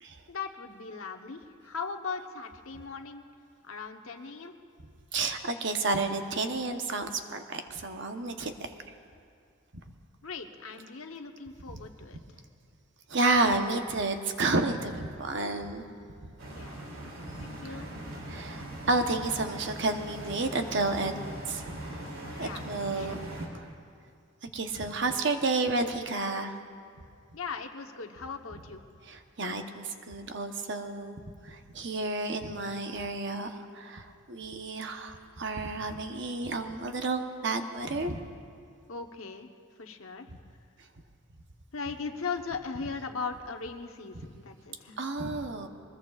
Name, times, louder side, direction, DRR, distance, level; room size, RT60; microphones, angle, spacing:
voice 1, 0.3-3.2 3.6-4.6 10.2-12.2 16.5-16.9 17.4-17.9 22.1-22.6 22.9-23.2 27.3-28.8 38.9-39.5 39.8-40.3 41.7-45.0, left 5 dB, 80° left, 5 dB, 1.0 m, -39 dB
voice 2, 5.1-8.7 11.7-11.8 13.1-15.8 17.3-17.8 18.3-21.1 21.4-22.1 22.4-23.6 24.4-26.6 29.1-38.2 45.0-45.7, right 3 dB, 55° right, 6 dB, 0.9 m, -31 dB
sound 1, 16.4-23.5, right 1 dB, 85° right, 2.9 m, -41 dB
23.5 x 20.5 x 2.4 m, 2.3 s
head